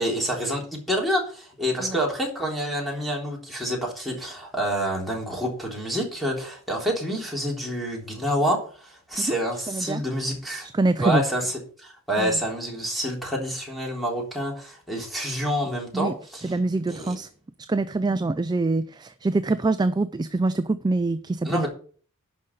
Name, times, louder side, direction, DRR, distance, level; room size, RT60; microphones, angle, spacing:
voice 1, 0.0-10.7 11.0-16.5 16.9-17.1 21.4-21.7, equal, ahead, 3.4 m, -28 dB
voice 2, 9.7-10.0 10.7-11.2 12.2-12.4 15.9-16.1 16.4-17.3 17.7-21.7, right 2 dB, 20° right, 0.4 m, -24 dB
11.0 x 5.3 x 6.4 m
head